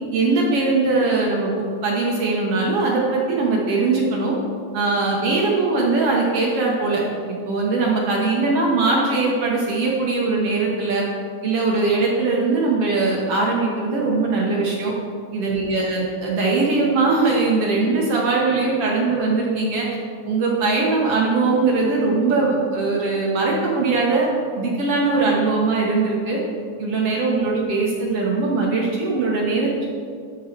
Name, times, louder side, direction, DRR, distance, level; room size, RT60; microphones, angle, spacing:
voice 1, 0.1-4.3 4.7-7.0 7.3-11.0 11.4-14.9 15.3-19.9 20.3-24.3 24.6-26.4 26.8-29.9, right 3 dB, 60° right, -3 dB, 1.8 m, -21 dB
12.5 x 5.5 x 4.6 m, 2.2 s
omnidirectional pair, 3.5 m